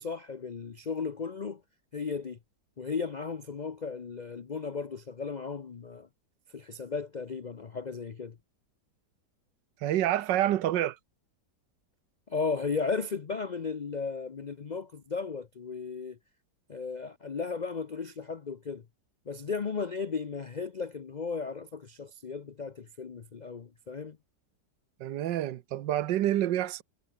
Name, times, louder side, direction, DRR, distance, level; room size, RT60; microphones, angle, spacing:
voice 1, 0.0-1.6 1.9-2.4 2.8-6.1 6.5-8.4 12.3-16.2 16.7-18.8 19.3-24.2, left 5 dB, 65° left, 0.4 m, -35 dB
voice 2, 9.8-11.0 25.0-26.8, right 12 dB, 80° right, 1.5 m, -28 dB
omnidirectional pair, 1.9 m